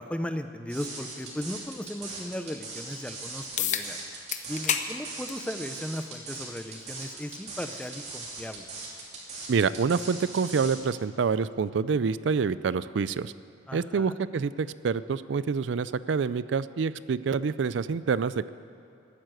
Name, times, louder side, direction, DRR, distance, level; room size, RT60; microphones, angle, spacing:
voice 1, 0.0-4.0 4.5-8.7 13.7-14.2, equal, 5° left, 9 dB, 0.6 m, -36 dB
sound 1, 0.7-10.8, right 3 dB, 35° right, 2.9 m, -40 dB
sound 2, 3.6-3.9 4.3-4.9 5.3-5.4 6.5-6.6 11.5-11.6, left 8 dB, 40° left, 0.8 m, -28 dB
voice 2, 9.5-13.3 13.7-18.5, right 5 dB, 80° right, 16 dB, 0.4 m, -27 dB
14.0 x 9.6 x 9.1 m, 2.8 s
head